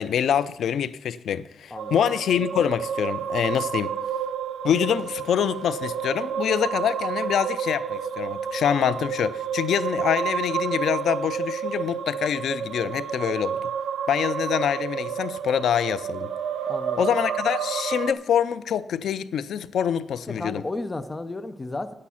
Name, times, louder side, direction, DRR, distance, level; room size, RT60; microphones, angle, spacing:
voice 1, 0.0-4.0 4.6-13.6 14.1-16.3 17.0-20.6, left 9 dB, 85° left, 0.4 m, -25 dB
voice 2, 1.7-2.0 16.7-17.1 20.3-21.9, left 2 dB, 20° left, 0.6 m, -33 dB
sound 1, 1.8-18.1, right 7 dB, 80° right, 0.5 m, -30 dB
9.7 x 8.5 x 5.7 m
wide cardioid pair, 135°, 0 cm